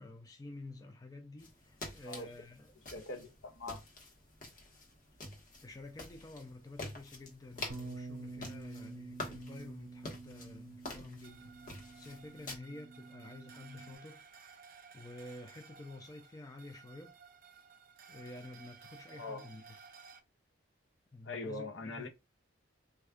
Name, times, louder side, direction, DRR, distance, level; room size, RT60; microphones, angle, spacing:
voice 1, 0.0-2.7 5.6-14.2 14.9-17.1 18.1-19.8 21.1-22.1, left 2 dB, 20° left, 0.3 m, -50 dB
sound 1, 1.4-12.6, left 2 dB, 40° left, 0.9 m, -48 dB
voice 2, 2.9-3.8 19.1-19.5 21.2-22.1, left 2 dB, 65° left, 0.6 m, -42 dB
Bass guitar, 7.7-13.9, right 3 dB, 85° right, 0.7 m, -48 dB
sound 2, 11.2-20.2, right 6 dB, 45° right, 0.4 m, -57 dB
3.4 x 2.3 x 3.4 m
head